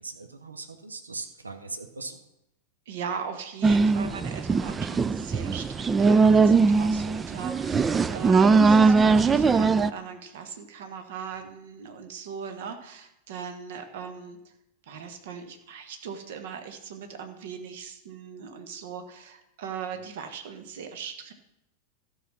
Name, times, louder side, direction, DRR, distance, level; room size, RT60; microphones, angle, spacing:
voice 1, 0.0-2.2, right 3 dB, 80° right, 8 dB, 0.9 m, -39 dB
voice 2, 2.9-14.4 14.9-21.3, right 7 dB, 55° right, 7 dB, 1.3 m, -39 dB
sound 1, 3.6-9.9, right 4 dB, 15° right, 0.4 m, -20 dB
13.0 x 5.8 x 6.0 m, 0.84 s
figure-of-eight pair, 90°, 0 cm